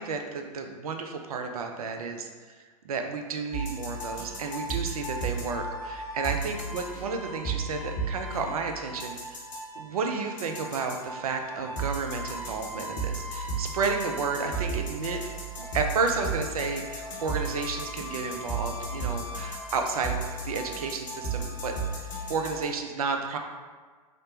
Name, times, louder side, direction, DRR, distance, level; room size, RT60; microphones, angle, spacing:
voice 1, 0.0-2.3 2.8-9.4 9.8-15.2 15.6-21.7 22.0-23.4, right 4 dB, 70° right, 4 dB, 0.4 m, -32 dB
sound 1, 3.5-22.6, right 3 dB, 55° left, 0.8 m, -35 dB
3.1 x 2.0 x 2.8 m, 1.5 s
figure-of-eight pair, 95°, 19 cm